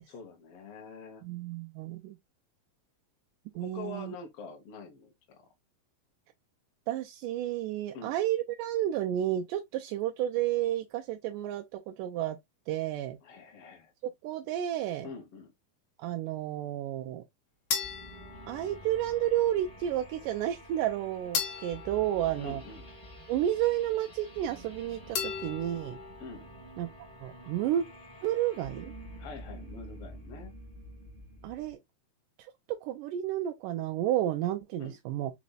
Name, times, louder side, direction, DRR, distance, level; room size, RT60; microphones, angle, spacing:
voice 1, 0.1-1.2 3.6-5.4 7.9-8.2 13.2-13.9 15.0-15.5 22.4-22.8 26.2-26.5 29.2-30.5 34.8-34.9, left 4 dB, 85° left, 1.3 m, -45 dB
voice 2, 1.2-2.2 3.6-4.1 6.9-12.4 12.7-13.2 14.0-15.1 16.0-17.2 18.5-22.6 23.3-26.0 26.8-26.9 27.2-27.8 28.2-28.9 31.4-31.8 32.8-35.3, right 12 dB, 80° right, 1.9 m, -31 dB
sound 1, 17.7-19.2 21.3-23.2 25.1-26.3, left 6 dB, 70° left, 1.4 m, -37 dB
sound 2, 17.8-31.8, equal, 10° left, 2.3 m, -48 dB
5.1 x 4.1 x 2.3 m
omnidirectional pair, 4.2 m